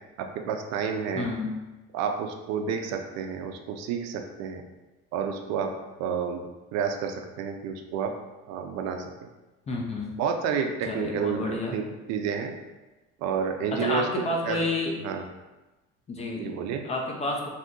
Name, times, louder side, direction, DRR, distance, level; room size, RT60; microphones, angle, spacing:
voice 1, 0.2-1.3 1.9-4.6 5.1-6.4 6.7-8.2 8.5-9.1 10.2-12.5 13.2-14.7 15.0-15.2 16.4-16.8, right 6 dB, 65° right, 5 dB, 0.4 m, -30 dB
voice 2, 1.2-1.5 9.7-10.1 10.9-11.8 13.7-15.0 16.1-16.5 16.8-17.5, left 2 dB, 25° left, 0 dB, 0.4 m, -30 dB
2.7 x 2.5 x 3.6 m, 1.1 s
cardioid pair, 135°, 29 cm